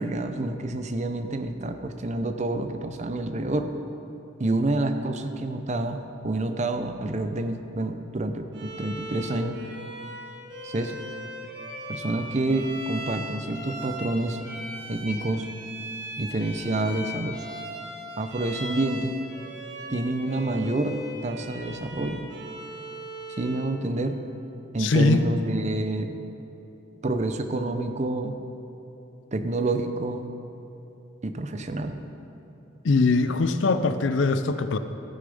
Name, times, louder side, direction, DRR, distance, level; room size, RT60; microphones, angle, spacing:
voice 1, 0.0-3.7 4.4-6.0 6.2-9.6 10.6-11.0 11.9-14.4 14.9-15.5 16.2-17.4 18.2-19.2 19.9-20.9 21.2-22.2 23.4-24.2 24.7-26.1 27.0-28.3 29.3-30.3 31.2-32.0, right 2 dB, 35° right, 7 dB, 0.6 m, -28 dB
Bowed string instrument, 8.5-23.8, equal, 60° right, 1.6 m, -39 dB
voice 2, 24.8-25.2 32.8-34.8, left 3 dB, 65° left, 11 dB, 0.5 m, -22 dB
14.5 x 6.8 x 5.3 m, 2.9 s
head